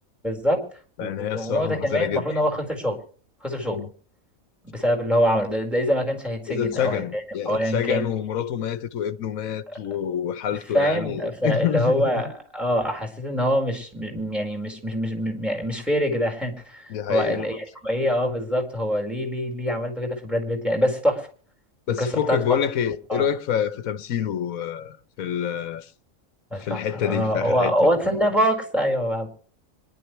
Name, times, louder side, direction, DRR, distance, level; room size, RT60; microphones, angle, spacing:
voice 1, 0.2-0.6 1.0-3.0 3.4-3.8 4.6-8.1 10.7-21.3 21.9-22.4 23.1-23.3 26.5-29.3, equal, ahead, 4.6 m, -24 dB
voice 2, 1.0-2.4 3.7-3.9 6.5-12.2 16.9-17.5 18.2-18.3 21.9-25.9 26.6-28.0, left 9 dB, 80° left, 1.3 m, -27 dB
26.0 x 11.5 x 3.2 m
omnidirectional pair, 1.4 m